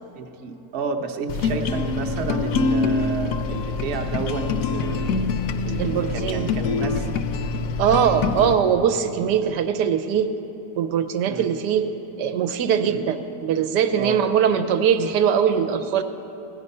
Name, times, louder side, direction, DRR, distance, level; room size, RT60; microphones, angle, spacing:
voice 1, 0.1-5.2 5.6-7.1 11.2-11.5 12.8-13.0 14.0-14.2, right 5 dB, 50° right, 3 dB, 0.9 m, -31 dB
sound 1, 1.3-8.5, left 4 dB, 70° left, 0.9 m, -25 dB
voice 2, 5.8-6.5 7.8-10.3 10.8-11.9 12.2-16.0, right 8 dB, 90° right, 9 dB, 1.2 m, -21 dB
16.0 x 10.5 x 5.4 m, 3.0 s
omnidirectional pair, 1.8 m